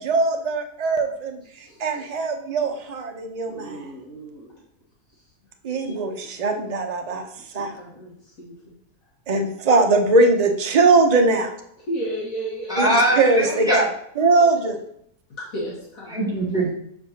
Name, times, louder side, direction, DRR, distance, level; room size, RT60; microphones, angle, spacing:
voice 1, 0.0-1.4 1.8-3.9 5.6-7.2 7.5-7.7 9.3-11.5 12.8-12.9 13.2-13.9 14.2-14.8, right 3 dB, 40° right, 4 dB, 0.5 m, -20 dB
voice 2, 3.5-4.5 5.9-6.0 7.8-8.5 11.9-12.8 15.5-16.2, right 1 dB, 65° left, -5 dB, 1.6 m, -32 dB
voice 3, 12.7-13.8 16.1-16.7, right 1 dB, 5° right, -7 dB, 2.0 m, -21 dB
6.9 x 5.2 x 2.8 m, 0.70 s
omnidirectional pair, 1.6 m